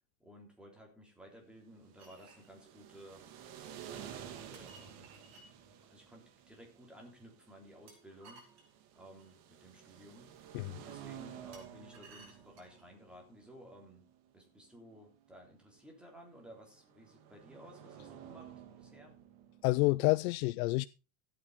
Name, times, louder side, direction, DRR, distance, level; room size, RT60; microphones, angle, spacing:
voice 1, 0.2-3.2 3.9-5.2 5.9-10.3 10.8-14.0 14.3-18.5 18.8-19.2, equal, ahead, 3.4 m, -55 dB
sound 1, 1.7-19.6, right 9 dB, 80° right, 2.6 m, -53 dB
sound 2, 2.0-2.5 4.5-5.5 7.9-9.3 11.5-12.9, right 3 dB, 40° right, 5.3 m, -58 dB
voice 2, 19.6-20.9, left 23 dB, 75° left, 0.5 m, -28 dB
14.5 x 8.8 x 4.1 m
cardioid pair, 160°, 42 cm